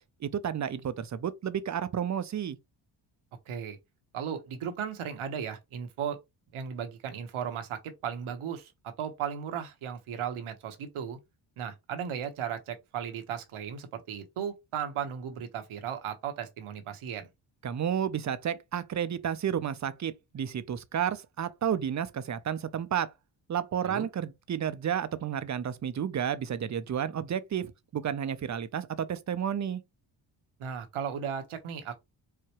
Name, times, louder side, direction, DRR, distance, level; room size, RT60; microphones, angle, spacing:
voice 1, 0.2-2.6 17.6-23.1 23.5-29.8, right 8 dB, 35° right, 0.6 m, -31 dB
voice 2, 3.5-3.8 4.1-6.2 6.5-11.2 11.6-17.3 23.8-24.1 30.6-31.9, right 8 dB, 75° right, 1.1 m, -36 dB
4.8 x 2.2 x 3.0 m
cardioid pair, 75°, 50 cm